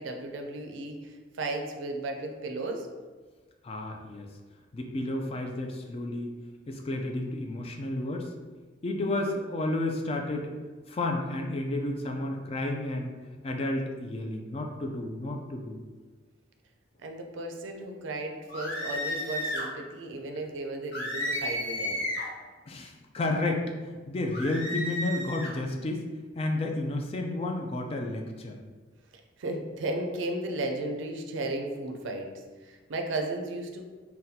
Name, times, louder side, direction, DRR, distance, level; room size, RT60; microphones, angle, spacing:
voice 1, 0.0-2.9 17.0-22.1 29.4-32.3 32.6-33.8, right 2 dB, 70° right, 3 dB, 0.4 m, -34 dB
voice 2, 3.6-4.3 4.7-6.3 6.7-8.3 8.8-10.6 10.9-13.2 13.4-15.8 22.7-26.1 26.4-28.6, left 2 dB, 30° left, 2 dB, 0.3 m, -31 dB
sound 1, 18.5-19.7 20.9-22.3 24.3-25.5, left 1 dB, 60° left, 1.0 m, -33 dB
4.0 x 2.2 x 2.7 m, 1.4 s
head